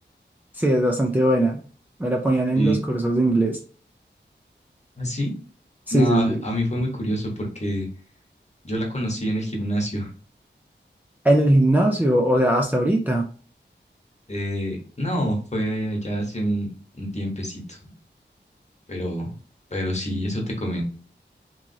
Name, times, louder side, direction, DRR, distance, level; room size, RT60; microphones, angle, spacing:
voice 1, 0.6-1.6 2.0-3.6 5.9-6.4 11.2-13.3, right 1 dB, 10° right, 1 dB, 0.5 m, -20 dB
voice 2, 5.0-5.3 5.9-7.9 8.6-10.1 14.3-16.7 16.9-17.8 18.9-19.3 19.7-20.8, equal, 35° left, 0 dB, 1.2 m, -26 dB
3.1 x 2.4 x 2.7 m, 0.40 s
wide cardioid pair, 45°, 20 cm